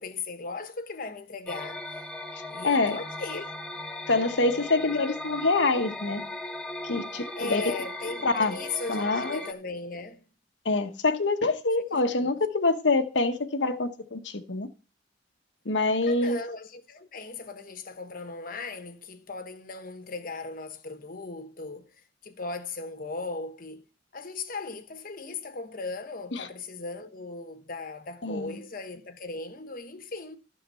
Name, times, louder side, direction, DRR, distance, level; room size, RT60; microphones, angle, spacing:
voice 1, 0.0-2.0 2.5-3.5 7.3-10.3 11.8-12.3 16.0-21.9 22.2-23.9 24.1-30.4, left 3 dB, 50° left, 1.1 m, -38 dB
sound 1, 1.5-9.5, left 1 dB, 5° left, 0.8 m, -38 dB
voice 2, 2.6-3.0 4.1-6.2 6.8-7.6 8.2-8.6 8.9-9.4 10.6-14.7 15.6-16.4 26.3-26.5 28.2-28.6, left 3 dB, 85° left, 1.1 m, -26 dB
12.0 x 6.6 x 5.5 m
head